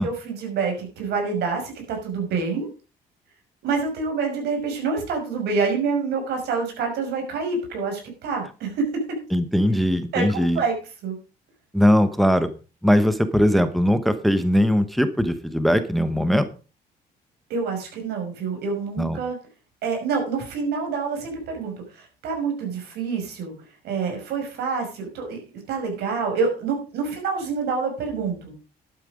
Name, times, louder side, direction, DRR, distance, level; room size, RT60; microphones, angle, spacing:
voice 1, 0.0-2.7 3.6-8.7 10.1-10.7 11.0-11.2 17.5-19.4 19.8-23.5 23.8-25.4 25.7-28.6, right 5 dB, 75° right, 3 dB, 5.8 m, -27 dB
voice 2, 9.3-10.6 11.7-12.5 12.8-16.5 19.0-19.2, equal, ahead, 11 dB, 1.0 m, -20 dB
11.5 x 9.0 x 5.0 m, 0.34 s
cardioid pair, 110°, 17 cm